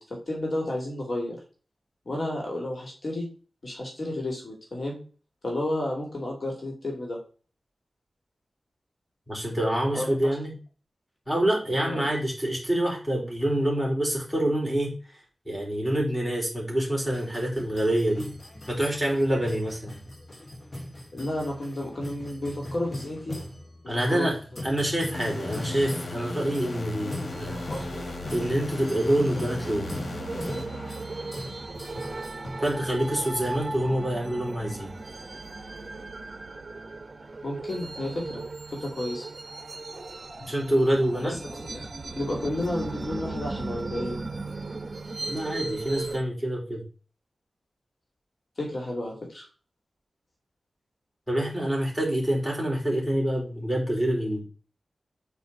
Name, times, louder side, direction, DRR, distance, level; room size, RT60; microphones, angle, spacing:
voice 1, 0.0-1.4 2.0-3.3 3.6-5.0 5.4-7.2 9.9-10.2 11.7-12.1 21.1-23.4 24.1-24.3 25.5-25.9 27.7-28.1 37.4-38.4 38.7-39.3 41.2-41.3 41.7-41.8 42.2-44.2 48.6-49.5, left 1 dB, 55° left, -1 dB, 2.8 m, -32 dB
voice 2, 9.3-10.6 11.3-15.0 15.5-18.3 18.7-20.0 23.9-24.4 24.6-27.6 28.3-29.9 32.6-35.0 40.5-41.3 45.3-46.8 51.3-54.4, right 1 dB, ahead, -2 dB, 4.1 m, -26 dB
sound 1, 17.1-33.6, left 1 dB, 40° left, 2.1 m, -41 dB
sound 2, 25.1-31.6, left 3 dB, 85° left, 1.6 m, -38 dB
sound 3, 27.3-46.2, right 3 dB, 45° right, 1.0 m, -37 dB
8.3 x 4.7 x 4.0 m, 0.37 s
wide cardioid pair, 100°, 0 cm